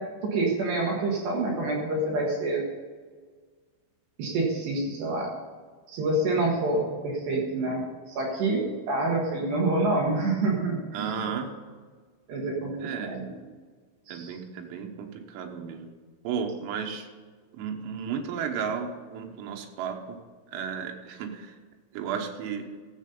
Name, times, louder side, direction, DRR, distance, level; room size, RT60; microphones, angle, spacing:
voice 1, 0.0-2.7 4.2-5.3 5.9-11.2 12.3-13.5 14.1-14.4, right 2 dB, 65° right, -1 dB, 3.4 m, -27 dB
voice 2, 10.9-11.5 12.8-13.2 14.1-15.9 16.3-17.1 17.5-20.2 20.5-21.6 21.9-22.7, right 7 dB, 90° right, 3 dB, 3.9 m, -33 dB
14.5 x 7.5 x 5.4 m, 1.5 s
omnidirectional pair, 5.8 m